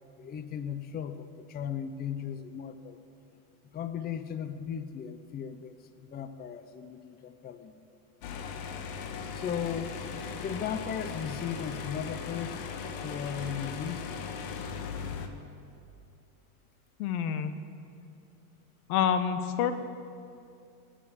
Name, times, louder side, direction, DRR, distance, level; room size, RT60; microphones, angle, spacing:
voice 1, 0.2-3.0 3.7-7.8 9.3-10.0 10.4-12.6 13.0-14.2, left 8 dB, 20° left, 11 dB, 0.5 m, -37 dB
sound 1, 8.2-15.3, left 6 dB, 55° left, 1.4 m, -38 dB
voice 2, 17.0-17.5 18.9-19.7, left 8 dB, 80° left, 10 dB, 1.2 m, -27 dB
18.5 x 7.4 x 7.0 m, 2.6 s
supercardioid pair, 115°, 44 cm